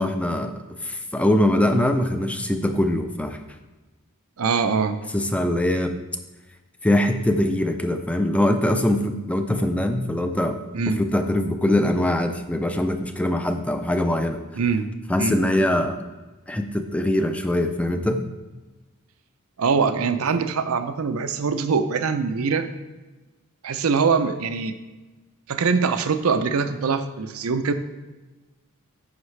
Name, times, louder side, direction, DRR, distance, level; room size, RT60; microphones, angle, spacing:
voice 1, 0.0-3.4 5.1-6.0 6.8-10.6 11.0-14.4 15.1-16.0 16.5-18.2, left 1 dB, 5° left, 7 dB, 0.4 m, -22 dB
voice 2, 4.4-5.0 10.7-11.0 14.6-14.8 15.2-15.4 19.6-22.7 23.6-24.7 25.5-27.7, right 5 dB, 75° right, 10 dB, 0.5 m, -23 dB
9.6 x 6.5 x 3.2 m, 1.2 s
head